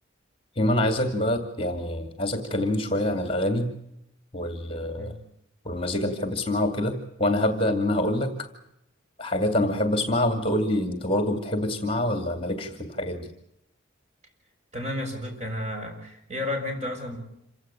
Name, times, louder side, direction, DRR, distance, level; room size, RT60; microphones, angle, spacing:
voice 1, 0.6-3.7 4.3-5.1 5.6-8.5 9.2-13.3, left 1 dB, 25° left, 7 dB, 2.5 m, -26 dB
voice 2, 14.7-17.2, left 1 dB, 35° right, 3 dB, 7.3 m, -32 dB
27.5 x 17.0 x 8.5 m, 0.77 s
head